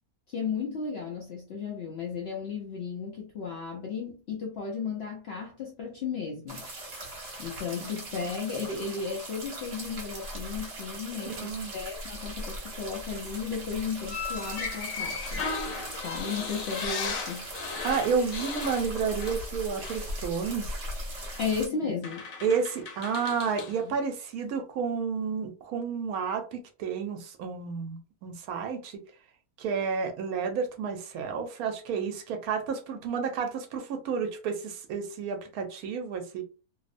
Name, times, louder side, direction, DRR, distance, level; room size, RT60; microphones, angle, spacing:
voice 1, 0.3-6.7 7.4-15.5 16.0-17.5 21.4-22.3 23.8-23.9, left 5 dB, 65° left, 0.6 m, -34 dB
sound 1, 6.5-21.7, right 1 dB, 45° right, 1.0 m, -39 dB
voice 2, 11.4-11.7 17.8-20.8 21.8-21.9 22.4-29.0 29.6-36.4, right 6 dB, 75° right, 1.0 m, -31 dB
sound 2, 14.1-19.6 19.8-20.1 21.3-21.4 22.0-23.8, left 4 dB, 85° left, 1.2 m, -36 dB
2.7 x 2.0 x 2.4 m
omnidirectional pair, 1.6 m